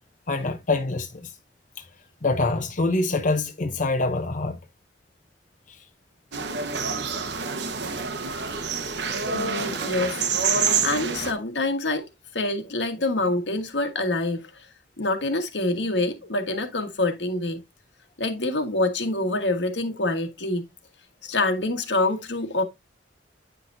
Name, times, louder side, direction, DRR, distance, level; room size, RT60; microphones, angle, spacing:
voice 1, 0.3-1.3 1.8-1.9 2.2-4.6 5.7-5.8, left 3 dB, 45° left, 0.8 m, -25 dB
sound 1, 6.3-11.3, right 5 dB, 75° right, 1.1 m, -27 dB
voice 2, 9.3-12.1 12.3-14.7 15.0-17.6 18.2-20.6 21.2-22.6, left 2 dB, 85° left, 1.6 m, -26 dB
9.2 x 5.9 x 2.7 m
head